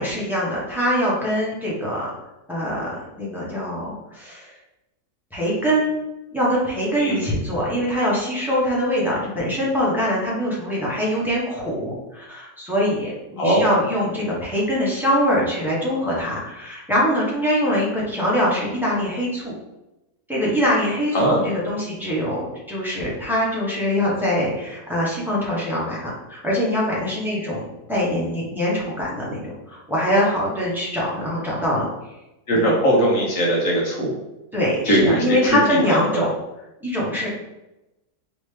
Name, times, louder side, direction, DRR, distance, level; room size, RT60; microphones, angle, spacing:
voice 1, 0.0-2.1 2.5-4.5 5.3-5.9 6.3-19.5 20.3-31.9 32.5-32.8 34.5-36.3 36.8-37.3, equal, ahead, -7 dB, 1.0 m, -23 dB
voice 2, 32.5-34.2 34.8-36.2, right 1 dB, 55° left, -4 dB, 1.6 m, -20 dB
4.0 x 3.6 x 3.3 m, 0.97 s
omnidirectional pair, 1.7 m